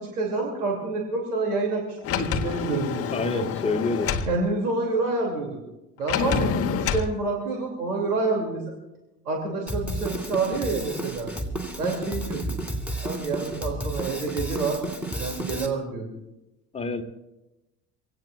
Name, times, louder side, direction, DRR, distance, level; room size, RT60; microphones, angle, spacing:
voice 1, 0.0-3.4 4.3-5.6 6.0-8.7 9.3-11.3 11.8-12.6 13.0-14.8 15.2-16.1, right 3 dB, 75° right, 1 dB, 2.8 m, -28 dB
Sliding door, 2.0-4.3 6.1-7.1, left 6 dB, 30° left, 1.1 m, -27 dB
voice 2, 3.1-4.2 16.7-17.0, left 3 dB, 15° left, 7 dB, 1.5 m, -27 dB
Drum kit, 9.7-15.7, right 1 dB, 5° right, 2.5 m, -32 dB
25.0 x 17.0 x 2.4 m, 0.96 s
figure-of-eight pair, 70°, 46 cm